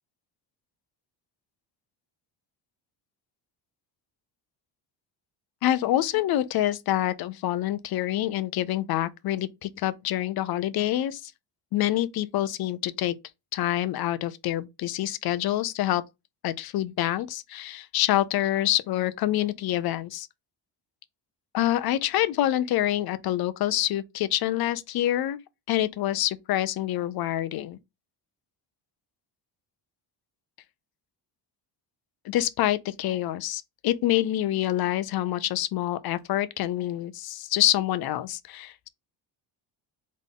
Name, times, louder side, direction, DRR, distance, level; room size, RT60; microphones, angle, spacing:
voice 1, 5.6-11.3 11.7-13.1 13.5-16.0 16.4-20.3 21.5-25.4 25.7-27.8 32.2-38.9, left 13 dB, 55° left, 0.5 m, -26 dB
3.8 x 3.6 x 3.7 m
cardioid pair, 165°, 46 cm